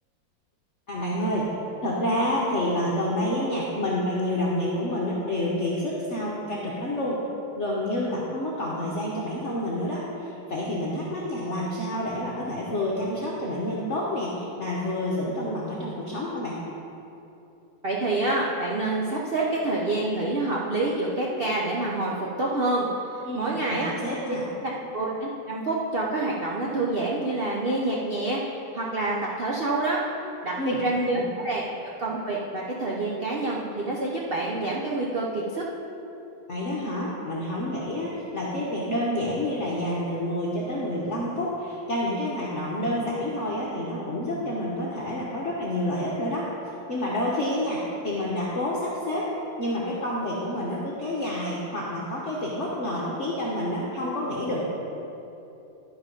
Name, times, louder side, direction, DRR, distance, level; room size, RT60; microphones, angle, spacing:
voice 1, 0.9-1.5 1.8-7.2 7.6-16.6 23.2-24.5 30.6-30.8 31.1-31.3 36.5-46.5 46.9-49.3 49.6-54.7, left 1 dB, 45° left, -5 dB, 1.1 m, -28 dB
voice 2, 17.8-22.9 23.3-23.9 24.9-28.4 28.7-30.0 30.4-31.6 32.0-35.6, right 2 dB, 75° right, -3 dB, 0.5 m, -27 dB
12.0 x 4.8 x 5.2 m, 2.9 s
omnidirectional pair, 2.1 m